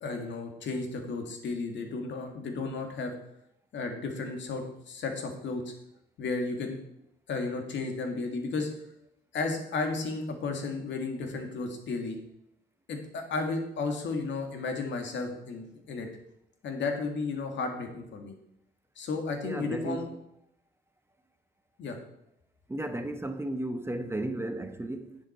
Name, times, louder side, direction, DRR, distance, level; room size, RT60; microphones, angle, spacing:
voice 1, 0.0-3.1 3.7-5.7 6.2-6.8 7.3-8.7 9.3-12.2 12.9-16.1 16.6-18.3 19.0-20.1 21.8-22.0, left 3 dB, 70° left, 1.9 m, -33 dB
voice 2, 19.4-20.1 22.7-25.2, right 1 dB, 10° right, 0.8 m, -34 dB
10.5 x 7.5 x 4.3 m
cardioid pair, 90°, 20 cm